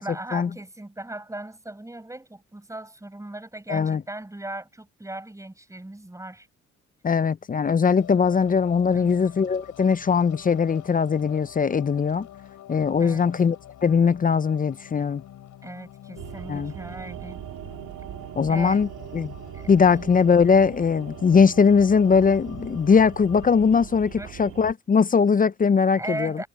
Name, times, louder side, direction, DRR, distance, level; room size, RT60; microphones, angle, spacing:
voice 1, 0.0-6.5 8.9-9.1 13.0-13.3 15.6-17.4 18.5-18.8 19.5-20.3 24.2-24.3 25.9-26.5, right 1 dB, 10° right, 7.0 m, -37 dB
voice 2, 3.7-4.0 7.0-12.3 12.7-13.6 13.8-15.2 16.5-16.7 18.4-19.3 19.7-26.4, left 6 dB, 30° left, 0.6 m, -20 dB
sound 1, 8.0-23.7, left 12 dB, 75° left, 6.9 m, -46 dB
sound 2, 16.2-24.7, right 13 dB, 85° right, 2.8 m, -40 dB
cardioid pair, 90°, 30 cm